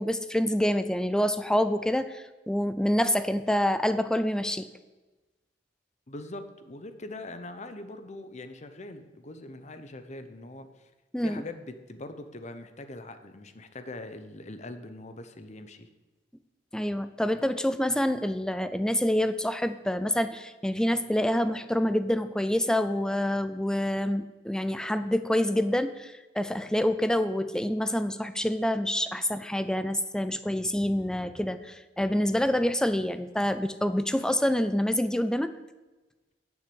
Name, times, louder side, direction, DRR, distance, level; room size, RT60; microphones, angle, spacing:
voice 1, 0.0-4.7 11.1-11.4 16.7-35.5, left 1 dB, 5° left, 11 dB, 0.4 m, -27 dB
voice 2, 6.1-10.9 11.2-15.9, left 2 dB, 40° left, 9 dB, 0.9 m, -42 dB
9.7 x 7.2 x 7.8 m, 1.2 s
head